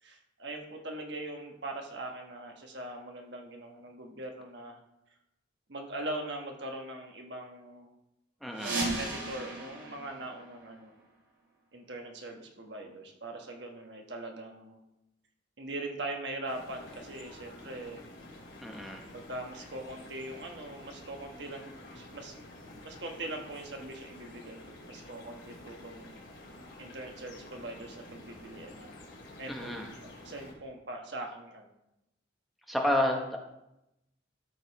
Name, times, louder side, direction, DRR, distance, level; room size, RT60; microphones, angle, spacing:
voice 1, 0.0-4.8 5.7-7.9 8.8-10.9 11.7-14.8 15.6-18.0 19.1-22.3 22.8-24.6 24.9-26.2 26.8-28.9 29.4-29.9 30.2-31.7, right 2 dB, 65° right, 2 dB, 1.3 m, -41 dB
voice 2, 8.4-8.8 18.6-19.0 29.5-29.9 32.7-33.4, left 1 dB, ahead, 0 dB, 0.9 m, -30 dB
sound 1, 8.5-11.2, right 2 dB, 80° right, 2.4 m, -36 dB
sound 2, 16.5-30.5, left 1 dB, 70° left, 2.8 m, -50 dB
13.0 x 5.4 x 4.1 m, 0.90 s
head